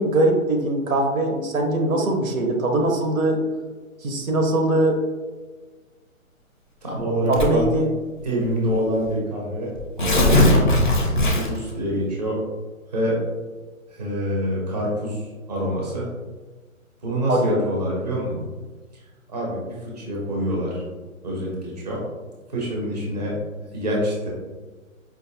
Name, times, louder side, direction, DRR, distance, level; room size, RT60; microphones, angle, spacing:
voice 1, 0.0-3.4 4.0-5.0 7.3-7.9 17.3-17.6, right 2 dB, 75° right, 3 dB, 0.9 m, -21 dB
voice 2, 6.8-7.7 8.2-9.7 10.0-10.7 11.0-12.4 12.9-13.2 13.9-16.1 17.0-18.4 19.3-20.8 21.2-22.0 22.5-23.3 23.7-24.3, equal, 30° right, -4 dB, 0.7 m, -26 dB
Tearing, 7.3-7.7 8.6-8.7 9.0-9.1 9.8-11.7, left 1 dB, 40° left, 0.4 m, -18 dB
4.6 x 2.5 x 2.6 m, 1.3 s
hypercardioid pair, 175°, 42 cm